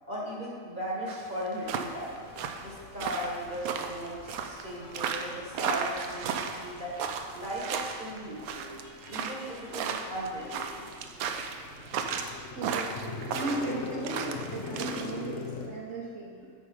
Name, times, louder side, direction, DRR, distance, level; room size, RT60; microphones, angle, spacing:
voice 1, 0.1-2.2 2.6-6.9 7.3-8.7 9.1-10.9, equal, 35° right, -5 dB, 1.4 m, -37 dB
sound 1, 1.1-15.1, right 6 dB, 85° right, 1.1 m, -35 dB
sound 2, 1.8-15.7, left 4 dB, 55° left, 1.1 m, -44 dB
voice 2, 12.3-16.5, right 2 dB, 55° right, -5 dB, 1.2 m, -36 dB
8.5 x 5.3 x 4.8 m, 2.1 s
omnidirectional pair, 1.5 m